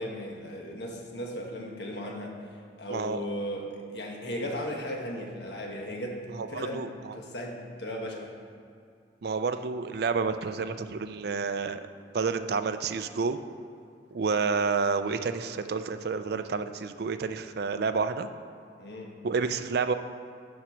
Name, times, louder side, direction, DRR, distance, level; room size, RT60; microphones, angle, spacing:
voice 1, 0.0-2.4 2.8-6.9 7.1-8.3 18.8-19.1, equal, 65° left, 0 dB, 1.3 m, -36 dB
voice 2, 2.9-3.2 6.4-7.2 9.2-11.8 12.1-13.4 14.1-18.3 19.2-19.9, right 5 dB, 60° right, 10 dB, 0.4 m, -29 dB
7.3 x 6.1 x 6.0 m, 2.4 s
head